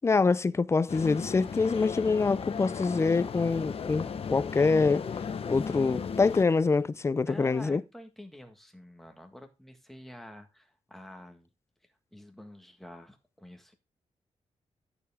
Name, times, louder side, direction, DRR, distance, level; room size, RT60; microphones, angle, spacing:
voice 1, 0.0-5.1 5.5-7.8, left 4 dB, 20° left, 0.4 m, -25 dB
sound 1, 0.9-6.4, left 6 dB, 50° left, 1.0 m, -36 dB
voice 2, 7.3-11.5 12.1-13.7, left 1 dB, ahead, 1.6 m, -48 dB
11.5 x 7.2 x 3.5 m
wide cardioid pair, 150°, 12 cm